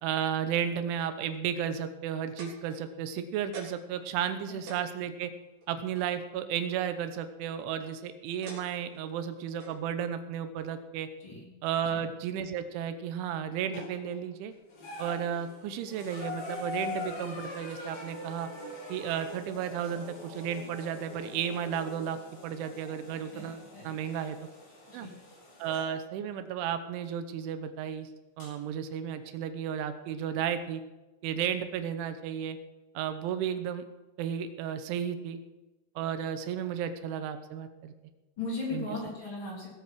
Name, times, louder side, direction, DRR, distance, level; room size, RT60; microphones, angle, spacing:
voice 1, 0.0-5.3 5.7-11.1 11.6-14.5 15.0-18.5 18.9-24.4 24.9-25.1 25.6-28.1 28.4-30.8 31.2-32.6 32.9-33.8 34.2-35.4 36.0-37.9 38.7-38.9, right 8 dB, 85° right, 10 dB, 3.3 m, -33 dB
sound 1, 2.4-3.1 3.5-4.0 4.3-4.4 4.7-6.2 7.3-7.7 8.4-9.0 9.6-9.8 10.6-10.7, right 3 dB, 50° right, 5.2 m, -47 dB
sound 2, 13.7-14.2 14.7-25.9 27.0-27.1 28.4-28.5, left 2 dB, 60° left, 7.3 m, -43 dB
voice 2, 23.3-23.9 24.9-25.1 38.4-39.7, left 3 dB, 30° left, -3 dB, 3.9 m, -38 dB
19.0 x 8.3 x 6.2 m, 1.1 s
omnidirectional pair, 5.4 m